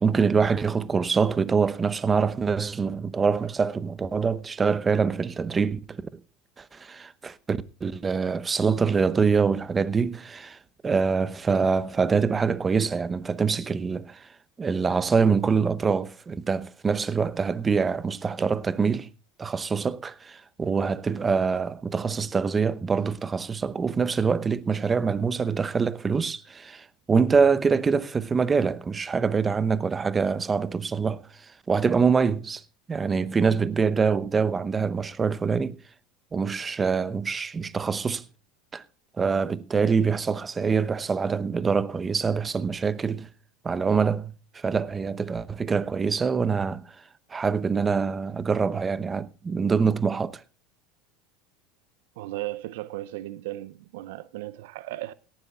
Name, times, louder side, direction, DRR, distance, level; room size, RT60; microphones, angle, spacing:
voice 1, 0.0-6.2 6.6-14.3 14.6-19.1 19.4-31.3 31.7-32.6 32.9-35.8 36.3-38.2 38.7-38.8 39.2-43.3 43.6-46.9 47.3-50.4, right 5 dB, 25° right, 0.9 m, -25 dB
voice 2, 52.2-55.1, right 17 dB, 70° right, 0.6 m, -36 dB
18.0 x 15.0 x 2.4 m
hypercardioid pair, 80°, 0 cm